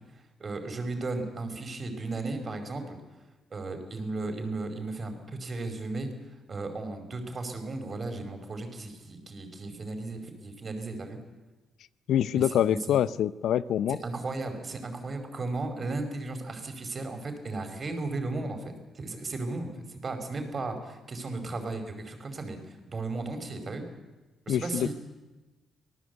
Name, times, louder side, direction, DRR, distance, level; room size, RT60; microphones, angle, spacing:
voice 1, 0.4-3.0 3.5-6.1 6.5-11.2 12.3-13.0 14.0-22.6 22.9-23.8 24.5-25.0, right 3 dB, 35° right, 4.8 m, -35 dB
voice 2, 12.1-14.0 24.5-25.0, left 10 dB, 75° left, 0.7 m, -25 dB
25.5 x 18.0 x 8.2 m
cardioid pair, 90°, 0 cm